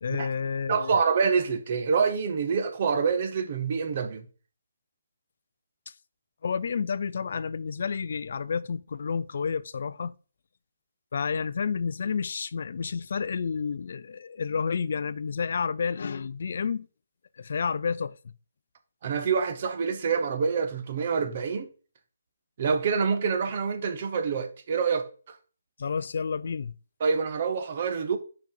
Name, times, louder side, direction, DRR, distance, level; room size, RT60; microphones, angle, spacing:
voice 1, 0.0-1.0 6.4-10.1 11.1-16.9 17.4-18.3 25.8-26.7, left 6 dB, 40° left, 0.3 m, -30 dB
voice 2, 0.7-4.2 19.0-21.7 22.6-25.1 27.0-28.2, right 5 dB, 25° right, 0.7 m, -26 dB
5.7 x 5.2 x 4.4 m
hypercardioid pair, 180°, 0 cm